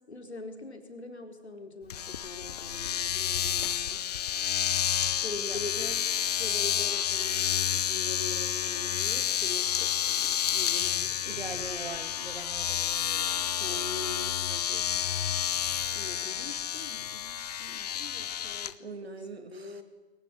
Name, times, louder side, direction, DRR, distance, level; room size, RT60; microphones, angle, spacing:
voice 1, 0.1-4.0 5.2-6.0 6.4-11.8 13.6-14.9 15.9-19.8, left 2 dB, 75° left, 5 dB, 4.5 m, -43 dB
Domestic sounds home sounds, 1.9-18.7, left 10 dB, 35° left, 0.8 m, -30 dB
voice 2, 11.2-13.9 18.4-19.8, right 4 dB, 70° right, 9 dB, 2.9 m, -43 dB
21.5 x 19.0 x 9.9 m, 1.2 s
figure-of-eight pair, 130°, 33 cm